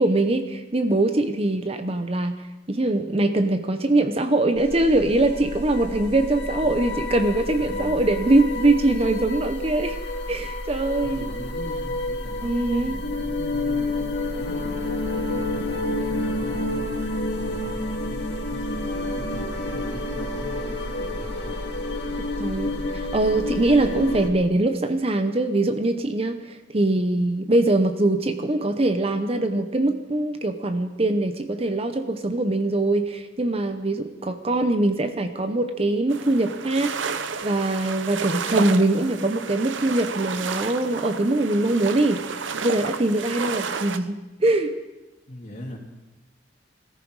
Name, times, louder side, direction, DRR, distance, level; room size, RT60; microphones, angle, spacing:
voice 1, 0.0-2.4 2.7-10.0 10.3-11.3 12.4-13.0 22.4-22.7 23.1-36.9 37.4-42.2 42.6-44.7, right 2 dB, 30° right, 8 dB, 0.8 m, -22 dB
sound 1, 4.6-24.3, left 2 dB, 65° left, 2.0 m, -29 dB
voice 2, 7.6-8.0 11.0-14.0 14.3-16.8 17.3-21.7 45.3-45.8, equal, 45° left, -1 dB, 2.9 m, -40 dB
sound 2, 36.1-44.0, right 5 dB, 90° right, 0.8 m, -31 dB
21.0 x 14.0 x 4.8 m, 1.0 s
head